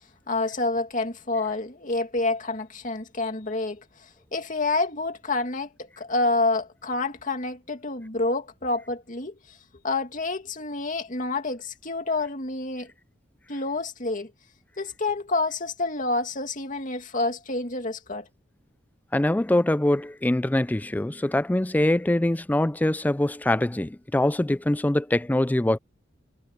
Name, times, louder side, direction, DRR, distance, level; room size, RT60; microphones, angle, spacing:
voice 1, 0.3-9.6 9.8-12.9 13.5-14.3 14.8-18.3, left 2 dB, 45° left, 2.5 m, -28 dB
voice 2, 19.1-25.8, left 1 dB, 10° left, 0.4 m, -23 dB
head